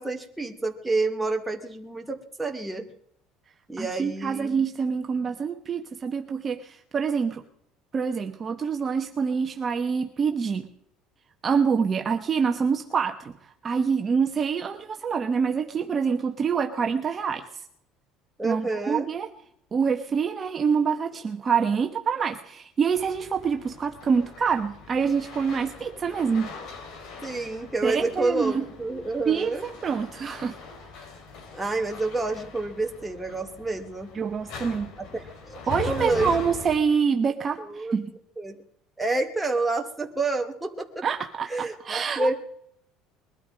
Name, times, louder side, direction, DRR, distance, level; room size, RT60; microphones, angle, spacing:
voice 1, 0.0-2.8 3.7-4.6 18.4-19.1 27.2-29.6 31.5-34.2 35.0-35.6 35.8-36.3 37.6-37.9 38.4-38.6 39.0-41.0 41.5-42.3, right 3 dB, 5° right, 3 dB, 2.4 m, -29 dB
voice 2, 3.8-7.4 7.9-10.7 11.4-17.5 18.4-19.3 19.7-26.6 27.8-28.7 29.3-30.6 34.1-34.9 35.7-38.1 41.0-42.3, right 6 dB, 30° right, 5 dB, 1.2 m, -26 dB
sound 1, 22.9-36.8, left 4 dB, 65° left, 5.7 m, -41 dB
21.5 x 12.5 x 5.3 m, 0.71 s
cardioid pair, 120°, 0 cm